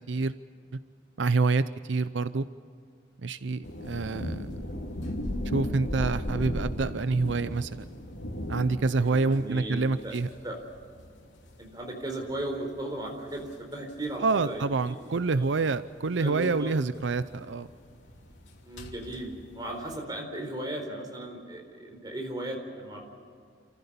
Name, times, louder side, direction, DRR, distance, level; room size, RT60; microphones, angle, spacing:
voice 1, 1.2-2.4 3.2-4.5 5.5-7.7 8.5-10.3 14.2-17.7, right 3 dB, 85° right, 13 dB, 0.6 m, -27 dB
sound 1, 3.6-20.0, left 1 dB, 90° left, 2.8 m, -38 dB
voice 2, 9.0-10.1 10.4-10.6 11.6-15.1 15.3-15.5 16.2-16.8 18.6-19.3 19.5-23.0, right 1 dB, 20° right, 2 dB, 4.3 m, -36 dB
28.5 x 15.0 x 7.0 m, 2.2 s
head